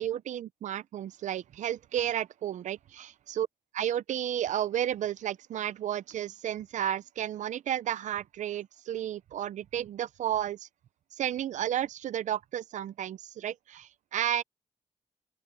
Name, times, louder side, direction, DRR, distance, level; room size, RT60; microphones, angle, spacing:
voice 1, 0.0-3.5 3.8-10.7 11.2-14.4, right 11 dB, 85° right, 0.5 m, -32 dB
open air
wide cardioid pair, 115°, 12 cm